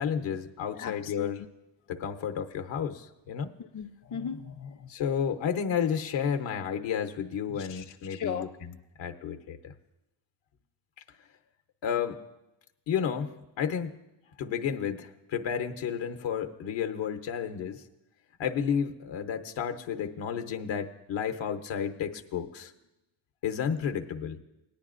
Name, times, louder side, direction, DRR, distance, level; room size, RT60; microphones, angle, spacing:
voice 1, 0.0-1.4 1.9-3.5 4.9-9.7 11.8-12.2 12.9-14.0 14.4-17.8 18.4-22.7 23.4-24.4, left 7 dB, 80° left, 6 dB, 0.8 m, -32 dB
voice 2, 0.7-1.3 3.7-4.9 7.6-7.8 8.1-8.5, left 7 dB, 45° left, 7 dB, 0.6 m, -37 dB
17.5 x 10.0 x 2.5 m, 0.96 s
cardioid pair, 75°, 45 cm